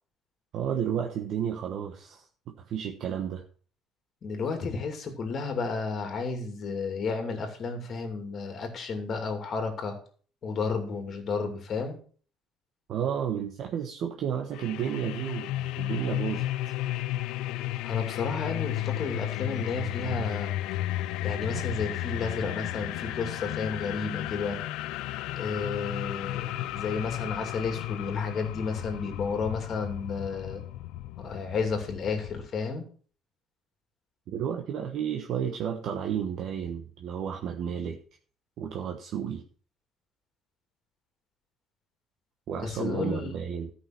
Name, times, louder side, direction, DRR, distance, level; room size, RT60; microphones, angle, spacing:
voice 1, 0.5-3.4 12.9-16.5 34.3-38.0 38.6-39.4 42.5-43.7, right 8 dB, 55° right, 3 dB, 1.1 m, -32 dB
voice 2, 4.2-10.0 10.4-12.0 17.8-20.5 21.2-24.6 25.4-30.6 31.2-32.8 42.6-43.4, left 4 dB, 40° left, 5 dB, 2.6 m, -32 dB
sound 1, 14.5-32.5, left 15 dB, 85° left, 0.5 m, -33 dB
13.5 x 5.7 x 6.0 m, 0.44 s
cardioid pair, 150°, 0 cm